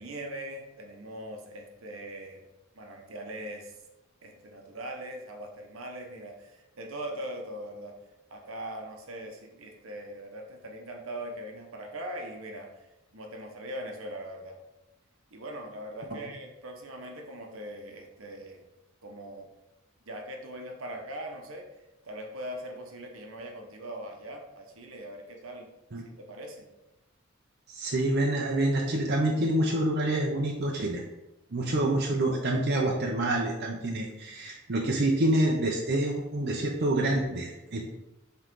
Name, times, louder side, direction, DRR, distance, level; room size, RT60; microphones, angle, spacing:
voice 1, 0.0-2.4 2.7-3.8 4.2-8.0 8.3-12.9 13.1-14.6 15.3-18.6 19.0-19.5 20.0-21.8 22.0-25.7 26.2-26.7 29.7-29.8, right 1 dB, 75° right, 2 dB, 1.0 m, -41 dB
voice 2, 27.7-31.0 31.5-37.8, right 1 dB, 50° right, -1 dB, 0.7 m, -27 dB
5.6 x 3.8 x 4.6 m, 0.98 s
head